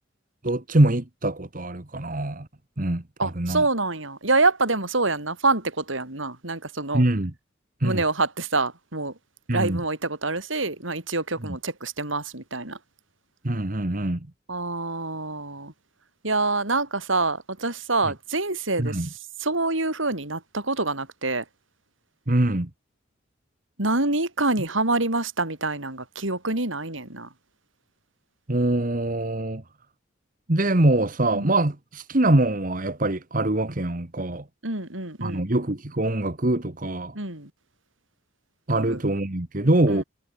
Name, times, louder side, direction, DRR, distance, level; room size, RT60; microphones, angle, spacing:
voice 1, 0.4-2.5 2.8-3.6 6.9-7.3 7.8-8.0 9.5-9.8 11.4-11.6 13.4-14.2 18.8-19.1 22.3-22.7 28.5-29.6 30.5-34.4 35.2-37.1 38.7-40.0, right 1 dB, 45° right, 1.6 m, -23 dB
voice 2, 3.2-7.0 7.8-9.1 9.5-12.8 14.5-15.7 16.2-19.1 19.4-21.4 23.8-27.3 31.3-31.6 34.6-35.5 37.1-37.5 38.7-39.0 39.9-40.0, right 3 dB, 80° right, 6.0 m, -26 dB
head